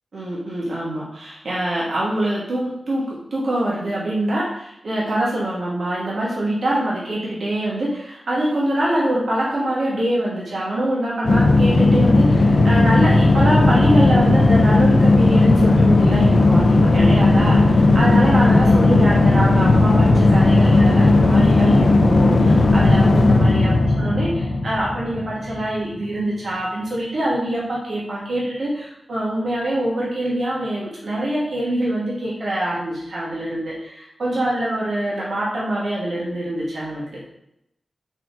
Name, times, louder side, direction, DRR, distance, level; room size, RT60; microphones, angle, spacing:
voice 1, 0.1-37.2, right 1 dB, 75° right, -6 dB, 1.3 m, -24 dB
sound 1, 11.2-25.7, left 2 dB, 70° left, 0.5 m, -15 dB
4.5 x 4.2 x 2.6 m, 0.80 s
wide cardioid pair, 80°, 0 cm